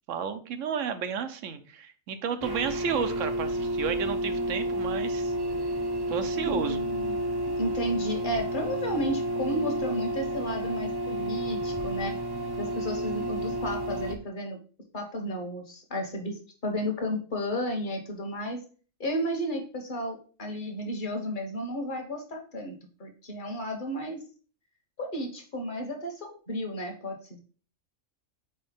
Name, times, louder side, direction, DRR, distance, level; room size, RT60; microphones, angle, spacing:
voice 1, 0.1-5.3 6.1-6.8, right 7 dB, 70° right, 10 dB, 1.0 m, -32 dB
sound 1, 2.4-14.1, right 1 dB, 25° right, 0.6 m, -31 dB
voice 2, 6.4-7.2 7.6-12.1 12.6-14.6 14.9-18.6 19.0-22.7 23.0-24.2 25.0-27.4, equal, 40° left, 3 dB, 1.3 m, -33 dB
4.7 x 4.2 x 5.1 m, 0.39 s
omnidirectional pair, 1.4 m